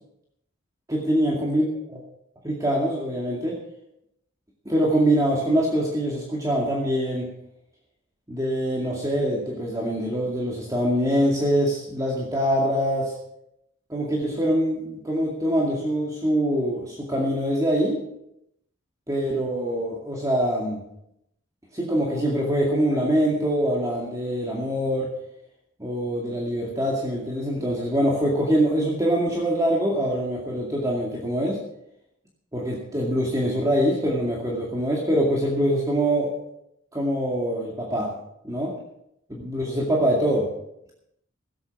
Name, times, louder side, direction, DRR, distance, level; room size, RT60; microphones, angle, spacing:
voice 1, 0.9-1.7 2.4-3.6 4.7-7.3 8.3-13.1 13.9-18.0 19.1-20.8 21.7-25.1 25.8-31.6 32.5-36.3 36.9-38.1 38.4-38.7 39.3-40.5, equal, 15° right, -3 dB, 2.2 m, -24 dB
16.0 x 8.8 x 6.0 m, 0.79 s
head